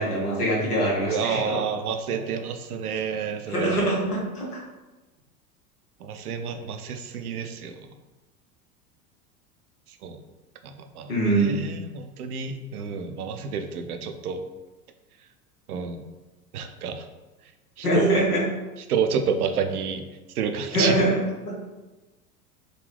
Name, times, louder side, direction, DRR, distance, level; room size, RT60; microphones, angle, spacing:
voice 1, 0.0-1.6 3.5-4.6 11.1-11.6 17.8-18.4 20.7-21.1, right 1 dB, 80° left, -3 dB, 1.0 m, -23 dB
voice 2, 1.1-4.0 6.0-7.9 10.0-10.2 10.6-14.4 15.7-16.0 16.5-17.0 17.8-18.3 18.9-20.0 20.4-21.0, right 6 dB, 75° right, 7 dB, 0.5 m, -29 dB
3.7 x 2.2 x 3.3 m, 1.1 s
figure-of-eight pair, 80°, 45 cm